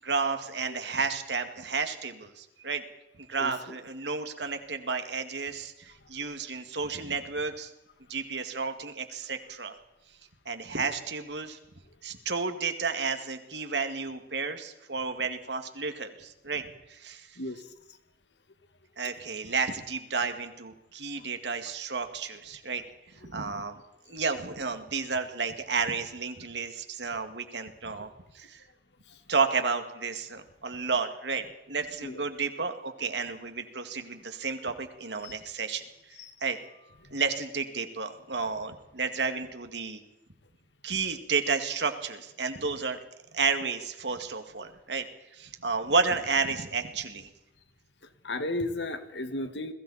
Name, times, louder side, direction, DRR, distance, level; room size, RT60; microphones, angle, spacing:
voice 1, 0.0-2.8 3.2-7.7 8.1-9.8 10.5-11.6 12.0-17.4 19.0-22.8 23.2-23.8 24.1-28.6 29.3-35.8 36.4-36.6 37.1-40.0 40.8-43.0 43.3-45.1 45.3-47.3, right 4 dB, 80° right, 7 dB, 2.2 m, -32 dB
voice 2, 3.4-3.8 17.4-17.7 21.2-21.3 23.2-23.3 29.1-29.2 32.0-32.2 35.2-35.3 36.2-36.3 37.0-37.1 48.0-49.7, left 2 dB, 90° left, 9 dB, 1.9 m, -35 dB
30.0 x 21.0 x 4.3 m, 0.94 s
head